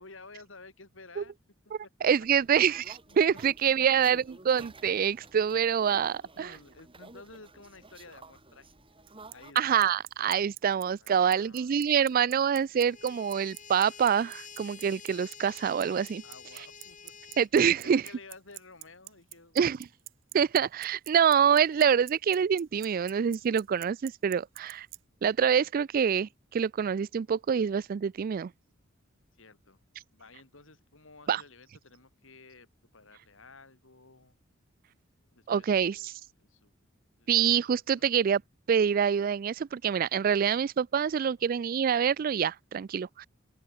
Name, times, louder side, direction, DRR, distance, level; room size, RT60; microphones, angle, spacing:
voice 1, 0.0-1.3 1.6-1.9 3.1-3.2 3.8-4.0 6.1-8.7 9.3-9.7 11.0-12.5 16.2-17.3 17.8-19.6 29.3-29.8 30.1-34.3 35.3-36.1 36.4-36.7 37.2-37.4 37.9-38.2 41.2-41.5, left 3 dB, 70° left, 4.0 m, -53 dB
voice 2, 2.0-6.5 9.6-16.2 17.4-18.0 19.6-19.8 20.3-24.9 25.2-28.5 31.3-31.4 35.5-36.1 37.3-38.4 38.7-43.3, right 7 dB, 45° right, 0.3 m, -26 dB
sound 1, 2.1-9.5, right 3 dB, 25° right, 4.0 m, -53 dB
Bicycle, 9.1-25.0, right 17 dB, 70° right, 1.9 m, -44 dB
sound 2, 12.8-17.5, left 7 dB, 40° left, 4.4 m, -49 dB
open air
head